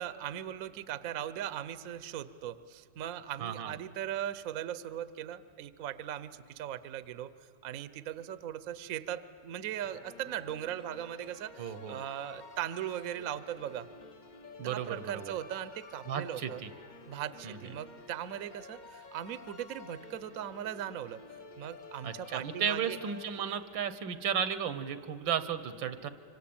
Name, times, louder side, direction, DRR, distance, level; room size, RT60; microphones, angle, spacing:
voice 1, 0.0-7.3 7.6-13.9 14.6-16.6 17.1-21.2 21.6-23.0, right 11 dB, 60° right, 14 dB, 1.0 m, -39 dB
voice 2, 3.4-3.7 11.6-12.0 14.6-15.3 16.1-16.7 17.4-17.6 22.0-26.1, right 8 dB, 85° right, 13 dB, 1.8 m, -34 dB
sound 1, 9.7-24.0, left 4 dB, 40° left, 0.7 m, -51 dB
26.0 x 25.5 x 8.7 m, 2.3 s
omnidirectional pair, 2.0 m